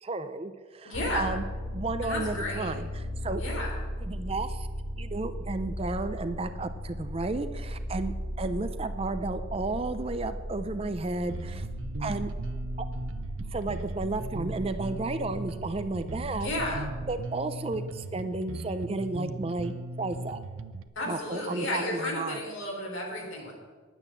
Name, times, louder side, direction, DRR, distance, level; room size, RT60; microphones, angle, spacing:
voice 1, 0.0-1.4 1.7-3.4 4.0-4.7 5.0-11.7 12.0-12.3 12.8-12.9 13.5-16.5 17.1-20.4 21.1-22.4, right 3 dB, 25° right, 10 dB, 0.5 m, -33 dB
voice 2, 0.8-1.3 2.0-2.7 3.4-3.7 16.4-16.8 21.0-23.5, left 1 dB, 70° left, -1 dB, 3.6 m, -33 dB
sound 1, 0.9-17.2, equal, 40° left, 1.4 m, -37 dB
Bass guitar, 11.3-20.9, right 2 dB, 75° right, 0.6 m, -38 dB
9.9 x 9.1 x 7.2 m, 1.5 s
head